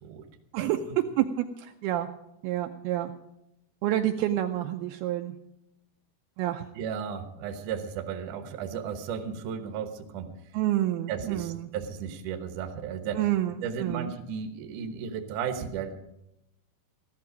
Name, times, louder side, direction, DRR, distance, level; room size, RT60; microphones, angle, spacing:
voice 1, 1.2-2.1 2.4-3.1 3.8-5.4 6.4-6.6 10.5-11.7 13.1-14.1, right 13 dB, 85° right, 5 dB, 2.2 m, -28 dB
voice 2, 6.8-10.3 11.1-13.2 13.6-16.0, right 7 dB, 70° right, 7 dB, 2.0 m, -34 dB
14.5 x 13.0 x 5.2 m, 0.85 s
omnidirectional pair, 5.1 m